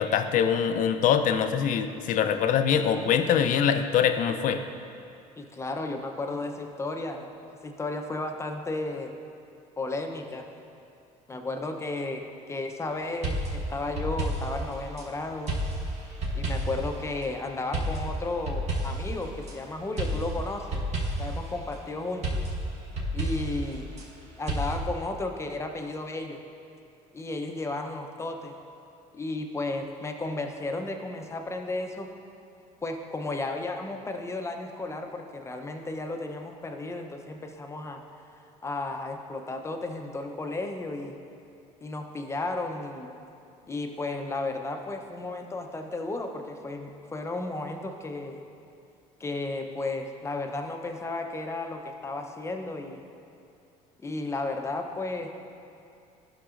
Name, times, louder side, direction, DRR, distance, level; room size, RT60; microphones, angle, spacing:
voice 1, 0.0-4.6, left 8 dB, 60° left, 8 dB, 0.5 m, -24 dB
voice 2, 5.4-7.3 7.6-9.1 9.8-10.5 11.3-12.2 12.5-15.6 16.3-20.8 21.2-22.4 23.1-23.9 24.4-26.4 27.1-28.5 29.1-32.1 32.8-38.0 38.6-41.1 41.8-43.1 43.7-48.4 49.2-53.0 54.0-55.3, left 2 dB, 15° left, 4 dB, 0.6 m, -33 dB
sound 1, 13.2-15.1 15.5-16.9 17.7-19.5 20.0-21.4 22.2-24.1 24.5-24.8, right 1 dB, 45° right, 1.3 m, -31 dB
11.5 x 6.0 x 2.5 m, 2.6 s
supercardioid pair, 95°, 16 cm